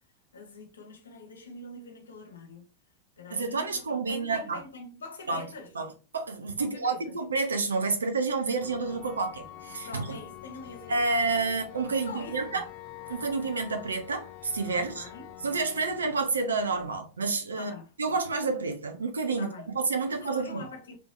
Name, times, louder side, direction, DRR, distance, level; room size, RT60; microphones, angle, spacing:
voice 1, 0.3-2.7 3.2-5.7 6.6-7.2 9.8-11.1 11.5-11.6 12.1-12.6 14.7-15.4 17.5-17.9 19.4-19.7 20.1-21.0, left 3 dB, 70° left, 0.9 m, -44 dB
voice 2, 3.3-4.6 5.3-5.4 5.7-10.2 10.9-12.6 13.1-15.0 15.4-17.7 18.0-20.6, right 4 dB, 75° right, 0.7 m, -29 dB
sound 1, 8.6-17.0, left 13 dB, 35° left, 0.5 m, -46 dB
3.5 x 3.1 x 2.5 m
figure-of-eight pair, 90°, 0 cm